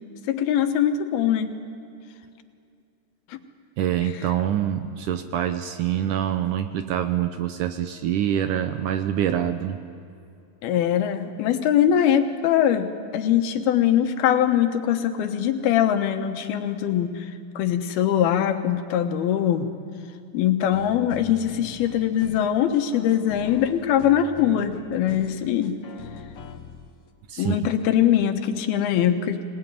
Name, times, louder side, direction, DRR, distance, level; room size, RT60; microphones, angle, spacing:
voice 1, 0.3-1.5 3.3-3.4 10.6-17.3 17.6-19.7 20.3-25.8 27.4-29.4, left 10 dB, 85° left, 7 dB, 3.1 m, -22 dB
voice 2, 3.8-9.8 27.3-27.6, right 10 dB, 75° right, 8 dB, 2.0 m, -25 dB
sound 1, 20.7-27.1 27.8-27.9, left 6 dB, 65° left, 1.4 m, -43 dB
25.0 x 19.5 x 9.3 m, 2.5 s
omnidirectional pair, 4.3 m